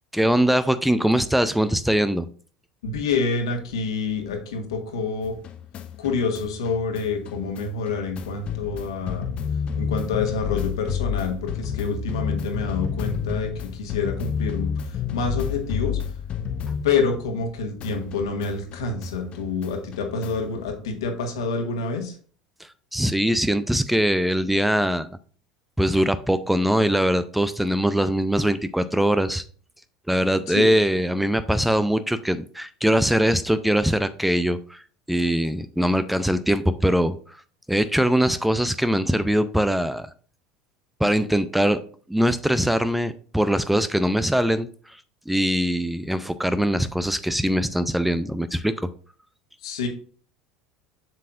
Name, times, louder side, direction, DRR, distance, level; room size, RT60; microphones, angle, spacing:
voice 1, 0.1-2.3 22.6-25.1 25.8-29.4 30.1-34.8 35.1-37.2 37.7-40.1 41.0-41.8 42.1-45.0 45.3-48.9, equal, 5° right, 13 dB, 0.5 m, -22 dB
voice 2, 2.8-5.3 6.0-9.3 9.8-14.7 15.1-16.0 16.8-22.1 30.5-30.7 49.6-49.9, left 4 dB, 70° left, 4 dB, 1.7 m, -27 dB
sound 1, 5.2-17.5 17.8-20.6, left 7 dB, 40° left, 0.8 m, -31 dB
7.4 x 7.4 x 2.5 m, 0.43 s
figure-of-eight pair, 70°, 3 cm